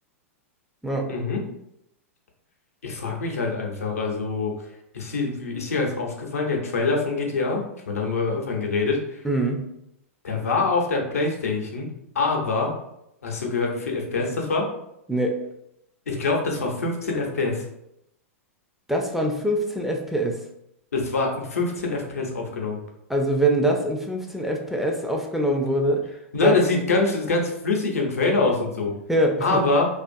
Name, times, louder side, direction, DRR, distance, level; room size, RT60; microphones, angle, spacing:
voice 1, 1.1-1.4 2.8-4.5 4.9-9.2 10.2-11.9 12.1-12.7 13.2-14.7 16.1-17.6 20.9-22.8 26.3-28.9 29.4-29.9, left 3 dB, 85° left, 0 dB, 0.7 m, -25 dB
voice 2, 9.2-9.7 15.1-15.4 18.9-20.4 23.1-26.1 26.4-26.8 29.1-29.6, right 1 dB, 5° right, 1 dB, 0.4 m, -24 dB
2.5 x 2.4 x 2.5 m, 0.80 s
hypercardioid pair, 110°, 8 cm